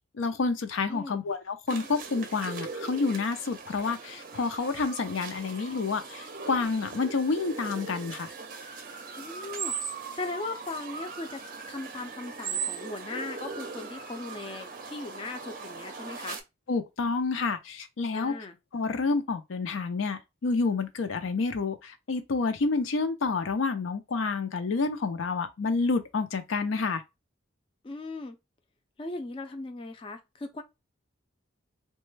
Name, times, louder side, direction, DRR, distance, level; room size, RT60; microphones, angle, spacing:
voice 1, 0.1-8.3 16.7-18.3 18.7-27.0, left 4 dB, 90° left, 0.5 m, -29 dB
voice 2, 0.9-1.2 9.2-11.4 11.7-16.4 18.1-18.6 27.8-28.4 29.0-30.6, left 2 dB, 25° left, 0.3 m, -38 dB
sound 1, 1.7-16.4, right 5 dB, 45° right, 0.5 m, -39 dB
2.9 x 2.2 x 3.1 m
head